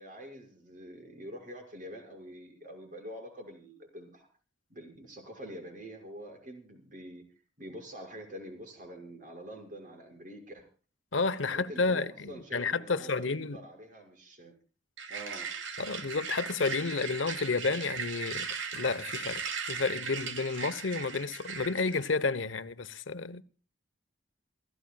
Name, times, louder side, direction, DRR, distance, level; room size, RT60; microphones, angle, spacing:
voice 1, 0.0-4.3 4.7-7.2 7.6-10.7 11.4-14.5 15.1-15.5, equal, 45° right, 6.0 m, -46 dB
voice 2, 11.1-13.6 15.8-18.5 18.7-19.4 19.7-23.4, left 4 dB, 90° left, 1.1 m, -31 dB
sound 1, 15.0-22.1, right 6 dB, 90° right, 2.8 m, -38 dB
28.0 x 15.0 x 2.4 m
head